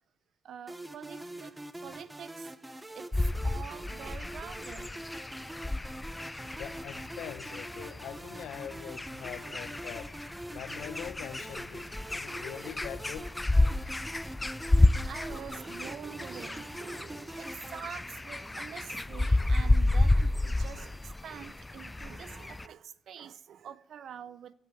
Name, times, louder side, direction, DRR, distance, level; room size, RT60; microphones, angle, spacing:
voice 1, 0.4-2.5 2.9-3.2 3.4-4.9 9.4-9.6 10.5-10.9 12.3-12.5 13.7-13.9 14.5-14.7 15.1-24.5, right 8 dB, 65° right, 0.7 m, -46 dB
sound 1, 0.7-17.8, right 1 dB, 10° right, 0.9 m, -44 dB
sound 2, 3.1-22.7, left 2 dB, 15° left, 0.4 m, -31 dB
voice 2, 6.5-10.2 10.5-13.4, left 10 dB, 80° left, 0.7 m, -43 dB
15.5 x 6.8 x 8.3 m
cardioid pair, 90°, 0 cm